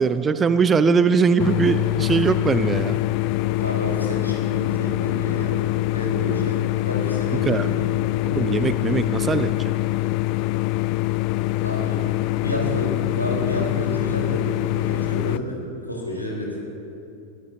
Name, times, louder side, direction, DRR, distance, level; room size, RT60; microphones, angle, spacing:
voice 1, 0.0-3.0 7.5-7.7 8.3-9.5, right 5 dB, 20° right, 13 dB, 0.5 m, -20 dB
sound 1, 1.4-15.4, left 17 dB, 45° left, 0.3 m, -24 dB
voice 2, 3.6-5.6 5.9-7.9 11.6-12.0 12.4-15.6 15.9-16.5, equal, 90° left, -3 dB, 4.0 m, -30 dB
23.5 x 17.0 x 2.8 m, 2.6 s
figure-of-eight pair, 90°, 0 cm